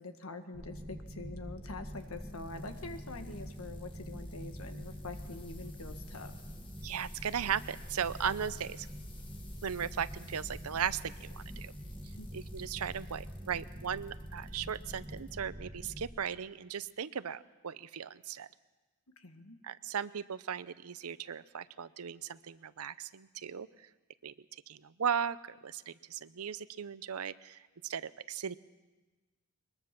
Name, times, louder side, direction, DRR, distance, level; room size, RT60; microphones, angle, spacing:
voice 1, 0.0-6.4 12.2-12.3 19.2-19.6, left 2 dB, 75° left, 7 dB, 1.7 m, -45 dB
sound 1, 0.5-16.1, equal, 10° right, 1.5 m, -45 dB
sound 2, 1.8-15.3 15.8-16.3 17.0-17.1, left 4 dB, 20° left, 1.7 m, -59 dB
voice 2, 6.8-8.9 9.6-11.7 12.3-18.5 19.6-23.9 24.2-28.6, right 7 dB, 80° right, 16 dB, 0.6 m, -37 dB
22.5 x 21.0 x 6.0 m, 1.2 s
head